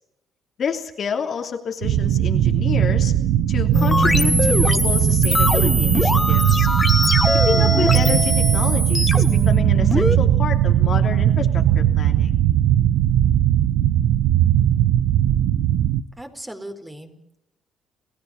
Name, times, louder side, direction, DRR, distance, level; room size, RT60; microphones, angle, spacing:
voice 1, 0.6-3.1 3.5-6.7 7.5-12.3, left 6 dB, 55° left, 3 dB, 3.1 m, -29 dB
sound 1, 1.8-16.0, right 11 dB, 85° right, 1.0 m, -18 dB
sound 2, 3.7-10.2, left 1 dB, 15° left, 1.5 m, -22 dB
voice 2, 16.2-17.4, right 1 dB, 10° right, 6 dB, 4.4 m, -38 dB
29.0 x 15.5 x 7.3 m, 0.83 s
cardioid pair, 80°, 0 cm